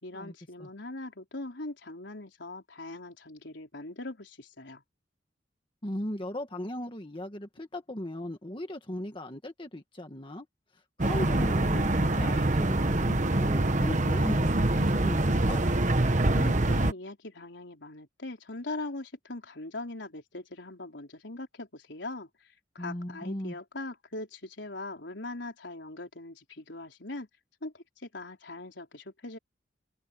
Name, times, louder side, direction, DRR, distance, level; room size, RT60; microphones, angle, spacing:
voice 1, 0.0-4.8 16.3-22.3 22.7-27.3 27.6-29.4, left 2 dB, 85° left, 4.0 m, -41 dB
voice 2, 5.8-10.5 10.7-15.6 22.8-23.6, left 1 dB, 30° left, 1.7 m, -38 dB
sound 1, 11.0-16.9, right 1 dB, 40° right, 1.3 m, -25 dB
open air
head